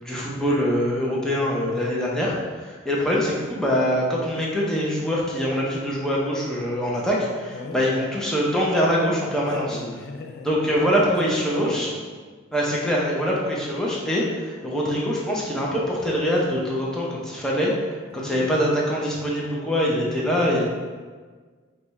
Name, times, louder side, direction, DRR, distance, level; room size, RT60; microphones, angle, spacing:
voice 1, 0.0-2.4 2.6-9.8 10.4-11.9 12.5-17.7 18.1-20.7, equal, 5° left, -5 dB, 0.7 m, -24 dB
voice 2, 7.5-7.9 9.5-10.6 11.2-12.0 18.1-18.5, left 3 dB, 55° left, 4 dB, 0.4 m, -36 dB
4.8 x 2.3 x 4.1 m, 1.5 s
head